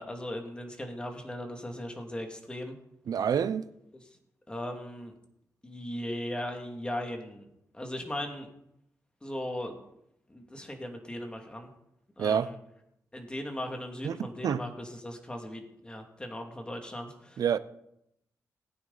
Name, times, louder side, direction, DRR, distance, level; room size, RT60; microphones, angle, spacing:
voice 1, 0.0-2.8 4.5-5.1 5.6-7.5 7.7-8.5 9.2-9.8 10.3-11.7 12.2-12.6 13.1-17.4, left 1 dB, 15° left, 2.4 m, -38 dB
voice 2, 3.1-3.7 12.2-12.5 14.0-14.2 14.4-14.6 17.4-17.6, right 8 dB, 75° right, 0.7 m, -27 dB
19.5 x 9.5 x 4.1 m
wide cardioid pair, 115°, 6 cm